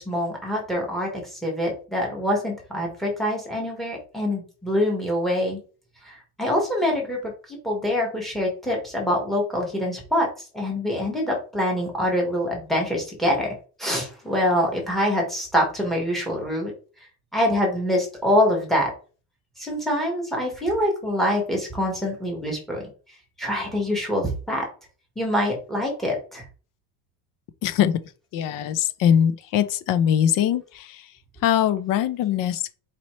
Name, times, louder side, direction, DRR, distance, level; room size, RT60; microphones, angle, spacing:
voice 1, 0.0-5.6 6.0-10.3 10.5-13.5 13.8-16.7 17.3-18.9 19.6-22.8 23.4-24.6 25.2-26.4, left 1 dB, ahead, 1.4 m, -25 dB
voice 2, 27.6-27.9 28.3-31.1 31.4-32.7, left 9 dB, 45° left, 0.5 m, -22 dB
4.2 x 4.1 x 3.1 m
cardioid pair, 165°, 46 cm